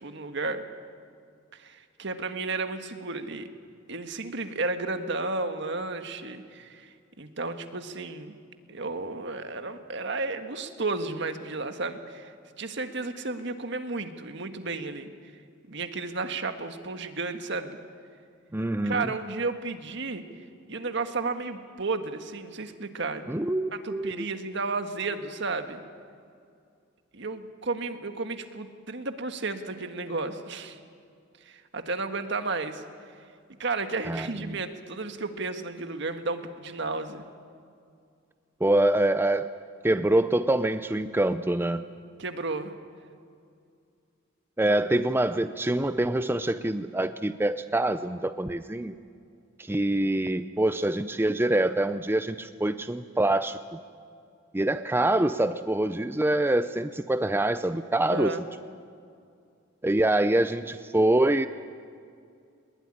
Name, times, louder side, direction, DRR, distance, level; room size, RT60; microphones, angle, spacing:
voice 1, 0.0-0.6 1.5-3.5 3.9-6.9 7.2-8.4 8.7-15.1 15.7-17.7 18.8-20.2 20.7-23.2 23.7-25.8 27.1-30.8 31.4-32.8 33.6-37.2 42.2-42.7 44.6-44.8 58.1-58.4, right 3 dB, 60° right, 7 dB, 1.7 m, -33 dB
voice 2, 18.5-19.1 23.3-24.3 34.1-34.6 38.6-39.5 39.8-41.8 44.6-48.9 49.7-53.6 54.5-58.4 59.8-61.5, right 1 dB, 10° right, 11 dB, 0.5 m, -25 dB
21.5 x 21.0 x 10.0 m, 2.4 s
head